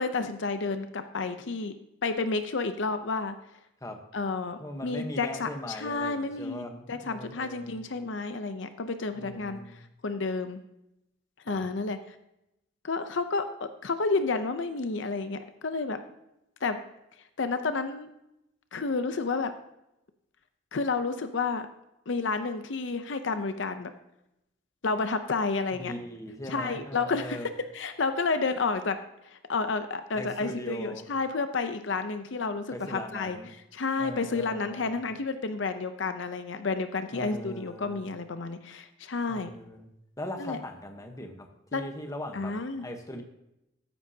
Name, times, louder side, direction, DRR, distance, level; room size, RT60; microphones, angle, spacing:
voice 1, 0.0-1.7 2.0-3.4 4.1-10.6 11.5-12.2 12.8-16.0 16.6-16.8 17.4-18.1 18.7-19.5 20.7-21.7 22.1-23.9 24.8-25.9 26.5-27.4 27.7-29.0 29.2-33.4 33.7-39.5 40.4-40.6 41.7-41.8 42.3-42.9, left 4 dB, 70° left, 9 dB, 0.7 m, -30 dB
voice 2, 4.6-7.9 9.1-9.9 11.5-11.6 25.7-27.5 30.1-31.1 32.7-33.5 34.0-35.0 37.1-38.1 39.3-42.5 42.8-43.2, left 1 dB, 15° left, 4 dB, 1.1 m, -40 dB
13.5 x 9.9 x 2.8 m, 0.86 s
head